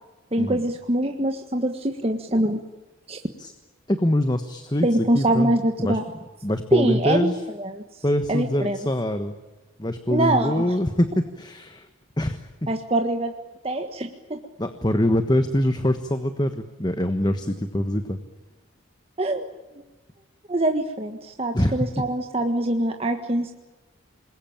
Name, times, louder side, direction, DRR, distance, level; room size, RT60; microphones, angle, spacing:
voice 1, 0.3-2.6 3.1-3.2 4.8-6.0 6.7-7.3 7.6-7.8 8.3-8.8 10.1-10.6 12.7-13.3 13.6-14.4 19.2-19.5 20.5-23.5, right 1 dB, 30° right, 4 dB, 1.5 m, -24 dB
voice 2, 3.9-4.9 5.1-5.5 5.8-6.0 6.4-7.4 8.0-9.4 9.8-11.9 12.2-12.7 14.6-18.2 21.5-21.8, left 1 dB, 20° left, 8 dB, 1.3 m, -24 dB
27.5 x 21.5 x 8.9 m, 1.2 s
head